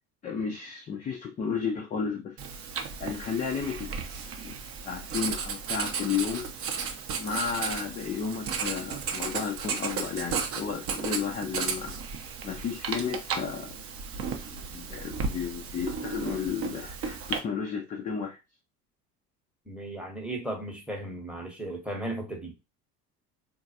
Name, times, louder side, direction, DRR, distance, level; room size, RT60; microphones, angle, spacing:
voice 1, 0.2-2.4 3.0-3.9 4.4-4.6 4.8-6.5 7.2-12.0 12.4-13.7 14.7-18.4, left 6 dB, 20° left, 0.4 m, -33 dB
Writing, 2.4-17.4, right 6 dB, 30° right, 0.6 m, -34 dB
voice 2, 19.7-22.5, right 1 dB, ahead, 0.9 m, -36 dB
3.7 x 2.3 x 2.7 m
figure-of-eight pair, 65°, 46 cm